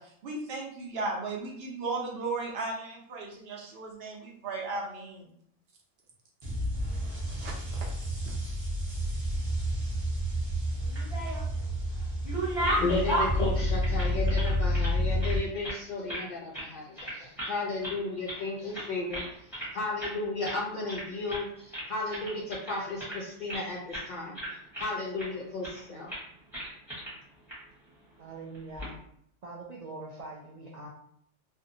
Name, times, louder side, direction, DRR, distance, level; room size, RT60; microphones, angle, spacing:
voice 1, 0.0-5.3 7.2-7.5 8.2-8.3, right 3 dB, 60° right, -1 dB, 0.8 m, -36 dB
sound 1, 6.4-15.4, equal, 30° right, 0.8 m, -30 dB
sound 2, 10.8-11.6 12.0-14.9 15.2-16.3 16.5-16.7 17.0-17.6 17.8-18.4 18.7-19.7 20.0-20.2 20.4-20.6 20.9-21.5 21.7-23.6 23.9-24.1 24.3-25.3 25.6-25.8 26.1-26.2 26.5-27.1 27.5-27.6 28.5-28.9, right 1 dB, ahead, 0.8 m, -34 dB
voice 2, 12.8-26.1, left 3 dB, 65° left, -4 dB, 0.4 m, -34 dB
voice 3, 28.2-29.0 29.4-30.9, right 3 dB, 75° right, -3 dB, 0.3 m, -43 dB
2.6 x 2.2 x 2.6 m, 0.66 s
omnidirectional pair, 1.3 m